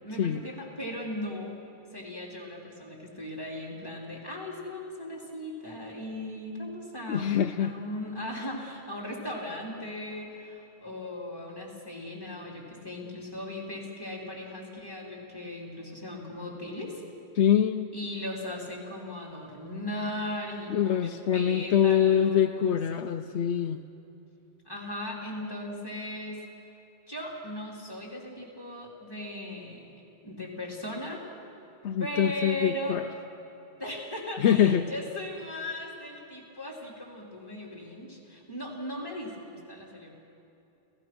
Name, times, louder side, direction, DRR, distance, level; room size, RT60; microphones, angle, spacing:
voice 1, 0.0-1.6 1.9-17.0 17.9-22.8 24.6-26.4 27.1-30.0 30.2-31.3 32.0-33.0 33.8-40.1, left 1 dB, 20° left, -2 dB, 3.5 m, -38 dB
voice 2, 7.1-7.7 17.3-17.9 20.7-23.8 31.8-33.0 34.4-34.9, left 9 dB, 80° left, 6 dB, 0.9 m, -24 dB
29.5 x 16.0 x 6.1 m, 2.8 s
omnidirectional pair, 1.1 m